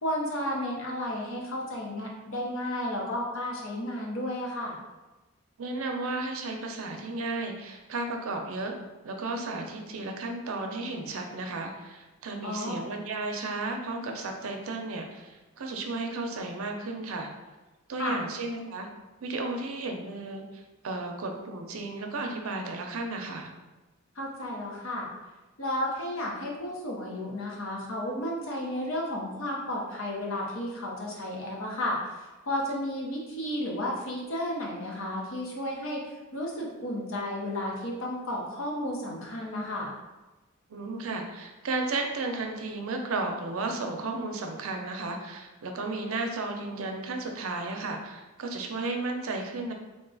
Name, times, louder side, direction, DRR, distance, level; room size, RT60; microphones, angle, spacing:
voice 1, 0.0-4.8 12.4-12.8 18.0-18.2 24.2-25.1 25.6-32.0 32.5-36.0 36.3-39.9, left 1 dB, 65° left, -2 dB, 0.9 m, -32 dB
voice 2, 5.6-8.7 9.0-17.3 17.9-18.9 19.2-23.5 40.7-49.7, right 2 dB, 75° right, 3 dB, 0.5 m, -34 dB
3.6 x 2.3 x 3.8 m, 1.1 s
head